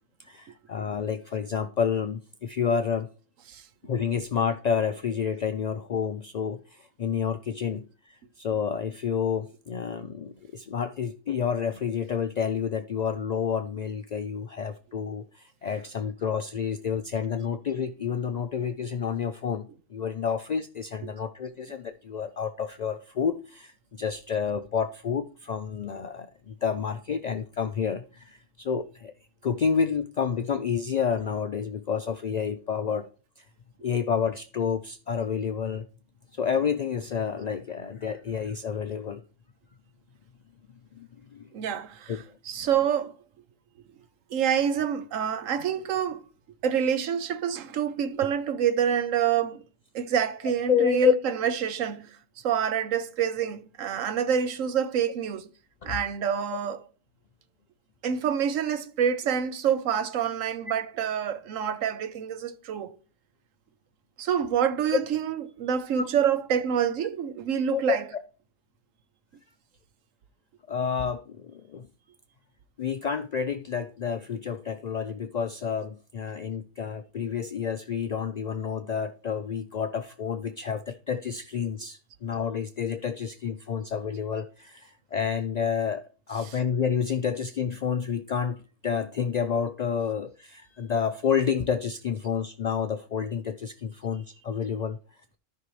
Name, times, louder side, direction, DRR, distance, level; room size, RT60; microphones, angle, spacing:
voice 1, 0.2-3.1 3.8-29.1 29.4-33.1 33.4-33.5 33.8-35.8 36.3-39.2 41.0-41.1 41.3-41.5 42.1-42.2 50.7-51.1 55.8-55.9 64.9-65.0 66.0-66.1 67.7-68.0 70.7-71.9 72.8-86.0 86.3-95.0, left 7 dB, 75° left, 0.3 m, -29 dB
voice 2, 41.5-43.1 44.3-46.2 46.6-49.6 49.9-52.2 52.4-55.5 55.8-56.8 58.0-63.0 64.2-68.0, right 8 dB, 90° right, 1.1 m, -27 dB
13.0 x 5.5 x 3.2 m
omnidirectional pair, 1.3 m